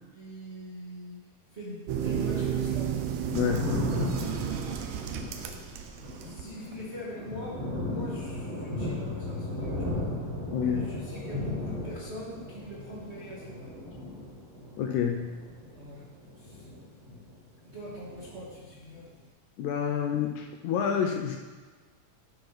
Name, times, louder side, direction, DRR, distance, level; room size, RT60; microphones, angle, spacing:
voice 1, 0.1-1.2 1.5-2.9 6.2-10.0 10.6-13.7 15.7-16.0 16.4-16.6 17.6-19.1, equal, 30° right, -9 dB, 1.5 m, -42 dB
sound 1, 1.9-6.4 6.7-6.8, right 8 dB, 75° right, 1.6 m, -32 dB
Thunder, 3.0-17.5 17.7-19.0, left 1 dB, 55° right, 3.2 m, -36 dB
voice 2, 3.3-3.8 10.5-10.8 14.8-15.3 19.6-21.4, left 8 dB, 75° left, 3 dB, 1.9 m, -28 dB
9.7 x 5.6 x 4.1 m, 1.4 s
omnidirectional pair, 3.6 m